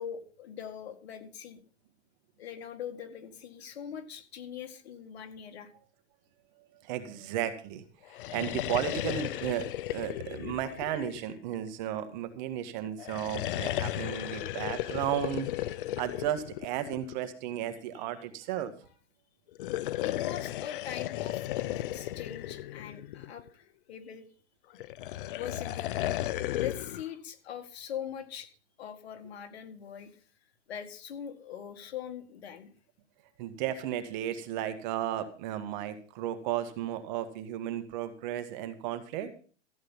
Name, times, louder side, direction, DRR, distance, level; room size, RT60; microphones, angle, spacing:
voice 1, 0.0-1.6 2.4-5.7 17.9-18.1 20.0-24.3 25.4-25.9 26.6-28.5 28.8-30.2 30.7-32.7, left 9 dB, 65° left, 8 dB, 2.2 m, -42 dB
voice 2, 6.7-7.9 8.3-9.6 9.9-15.5 16.0-18.7 33.4-39.3, right 11 dB, 45° right, 10 dB, 1.9 m, -34 dB
sound 1, 8.1-11.7 13.0-17.3 19.5-23.5 24.8-27.1, left 14 dB, 50° left, 0.7 m, -35 dB
14.5 x 8.9 x 5.6 m, 0.40 s
hypercardioid pair, 145°, 33 cm